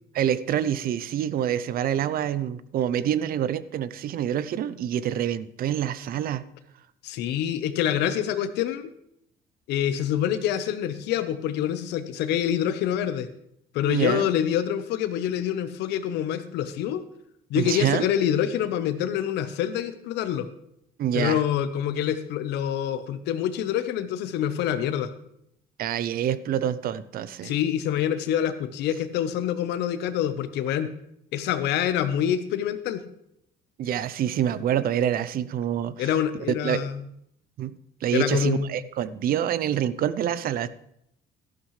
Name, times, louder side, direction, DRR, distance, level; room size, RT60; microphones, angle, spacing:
voice 1, 0.1-6.4 13.9-14.3 17.5-18.1 21.0-21.4 25.8-27.5 33.8-36.1 36.5-36.8 37.6-37.7 38.0-40.7, right 10 dB, 60° right, 16 dB, 0.6 m, -26 dB
voice 2, 7.0-8.9 9.7-13.3 13.7-17.0 17.5-20.5 21.1-25.1 27.4-30.9 31.3-33.0 36.0-37.0 38.1-38.8, left 10 dB, 85° left, 11 dB, 1.0 m, -26 dB
13.0 x 12.0 x 3.3 m, 0.75 s
cardioid pair, 110°, 17 cm